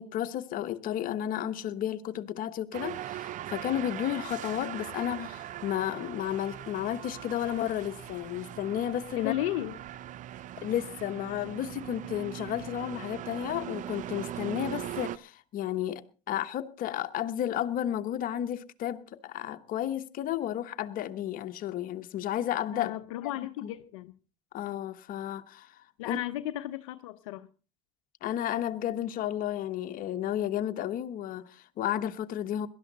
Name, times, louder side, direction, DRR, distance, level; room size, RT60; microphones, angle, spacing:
voice 1, 0.0-9.3 10.6-22.9 23.6-23.7 24.5-25.8 26.0-26.2 28.2-32.7, left 11 dB, 60° left, 1.2 m, -32 dB
sound 1, 2.7-15.2, right 12 dB, 50° right, 0.6 m, -40 dB
voice 2, 9.2-9.8 22.7-24.1 26.0-27.5, left 15 dB, 90° left, 0.7 m, -34 dB
18.0 x 12.5 x 4.0 m
supercardioid pair, 85°, 16 cm